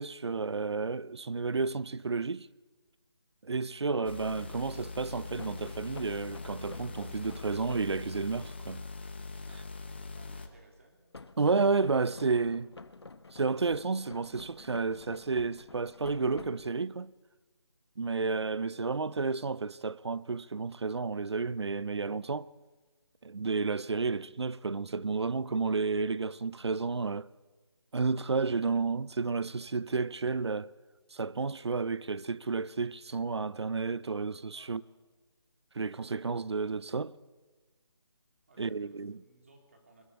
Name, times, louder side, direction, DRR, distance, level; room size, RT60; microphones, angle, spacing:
voice 1, 0.0-2.5 3.4-8.8 11.4-12.7 13.3-17.1 18.0-22.5 23.2-27.3 27.9-30.7 31.1-34.8 35.7-37.2 38.6-39.2, right 4 dB, 70° right, 0.7 m, -31 dB
sound 1, 4.0-10.5, left 3 dB, 25° left, 1.1 m, -42 dB
sound 2, 5.4-8.0 11.1-17.0, left 3 dB, 65° left, 1.3 m, -50 dB
voice 2, 9.4-11.0 34.5-34.8 38.5-40.0, right 2 dB, 30° right, 3.4 m, -61 dB
21.5 x 20.5 x 8.4 m
figure-of-eight pair, 180°, 15 cm